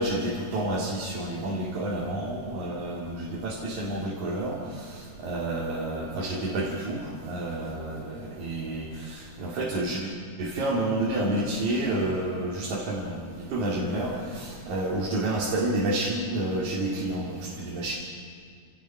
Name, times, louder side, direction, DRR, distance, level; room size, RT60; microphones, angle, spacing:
voice 1, 0.0-10.1 10.4-18.0, right 1 dB, 75° right, -4 dB, 3.9 m, -29 dB
29.0 x 18.0 x 5.7 m, 2.3 s
omnidirectional pair, 3.5 m